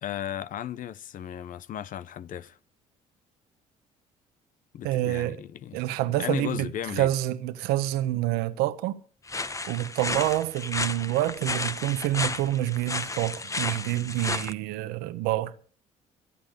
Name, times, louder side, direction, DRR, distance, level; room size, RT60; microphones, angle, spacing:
voice 1, 0.0-2.6 4.7-5.8 6.2-7.1, left 10 dB, 60° left, 0.8 m, -35 dB
voice 2, 4.8-5.4 5.7-6.7 7.0-9.0 9.7-15.5, right 15 dB, 85° right, 1.1 m, -27 dB
sound 1, 9.3-14.5, left 3 dB, 20° left, 1.1 m, -32 dB
26.0 x 8.7 x 5.2 m
supercardioid pair, 75°, 16 cm